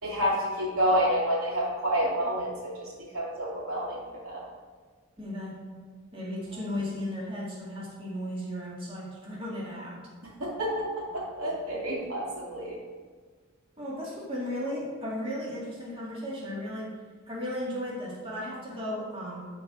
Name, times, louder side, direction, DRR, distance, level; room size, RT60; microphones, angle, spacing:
voice 1, 0.0-4.5 6.5-6.7 10.2-12.8, equal, 85° right, -4 dB, 2.9 m, -29 dB
voice 2, 5.2-5.6 6.1-10.0 13.8-16.9 17.3-19.5, left 1 dB, 25° right, -6 dB, 2.1 m, -35 dB
12.5 x 4.5 x 4.9 m, 1.5 s
head